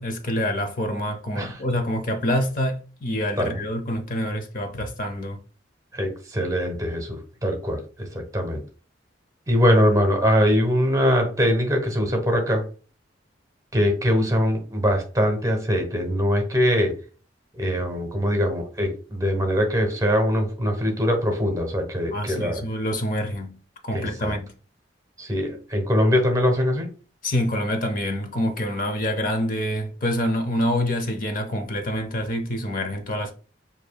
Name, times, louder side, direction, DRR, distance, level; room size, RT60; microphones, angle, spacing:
voice 1, 0.0-5.4 22.1-23.6 23.8-24.5 27.2-33.3, left 1 dB, 50° left, 0.7 m, -26 dB
voice 2, 5.9-8.6 9.5-12.7 13.7-16.9 17.5-22.6 23.9-24.3 25.2-26.9, equal, 20° right, 1.0 m, -22 dB
6.8 x 2.8 x 2.3 m
head